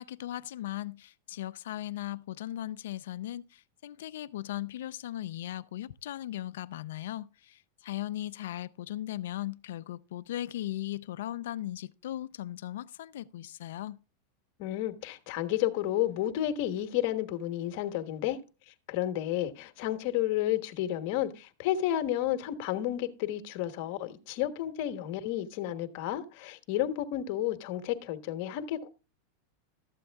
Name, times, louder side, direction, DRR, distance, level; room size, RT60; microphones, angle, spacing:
voice 1, 0.0-14.0, left 13 dB, 80° left, 0.5 m, -38 dB
voice 2, 14.6-18.4 18.9-28.9, left 12 dB, 55° left, 1.2 m, -31 dB
13.0 x 7.7 x 3.5 m
supercardioid pair, 130°, 0 cm